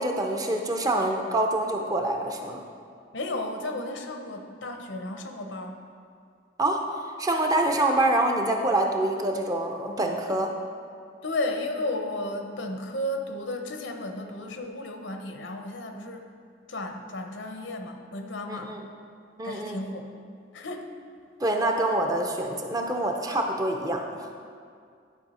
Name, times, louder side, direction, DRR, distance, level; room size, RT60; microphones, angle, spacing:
voice 1, 0.0-2.6 6.6-6.8 7.2-10.5 18.5-18.9 19.4-19.8 21.4-24.3, right 1 dB, 20° right, 2 dB, 0.5 m, -26 dB
voice 2, 3.1-5.8 11.2-16.3 16.7-18.8 19.4-20.1 20.5-20.9, left 1 dB, 75° left, 4 dB, 0.8 m, -33 dB
10.5 x 5.4 x 4.2 m, 2.2 s
head